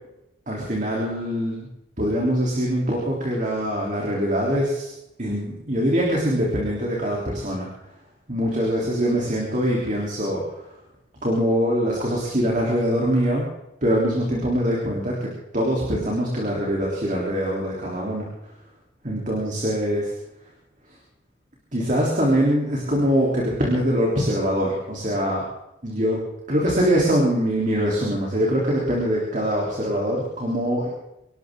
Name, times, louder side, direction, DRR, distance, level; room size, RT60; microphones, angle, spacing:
voice 1, 0.5-1.7 2.0-4.9 5.2-7.7 8.3-10.6 11.2-13.5 13.8-18.3 19.0-20.2 21.7-25.4 25.8-26.2 26.5-30.9, equal, 40° right, -3 dB, 3.5 m, -23 dB
26.0 x 12.5 x 3.8 m, 0.87 s
head